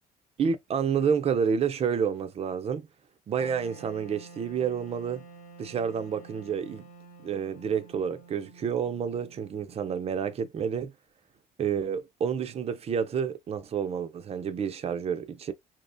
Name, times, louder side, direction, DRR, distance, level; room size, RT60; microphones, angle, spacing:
voice 1, 0.4-2.9 3.3-5.2 5.6-6.8 7.2-10.9 11.6-15.5, right 7 dB, 35° right, 0.4 m, -29 dB
Wind instrument woodwind instrument, 3.3-10.3, right 4 dB, 50° left, 0.9 m, -50 dB
2.8 x 2.1 x 2.5 m
cardioid pair, 110°, 17 cm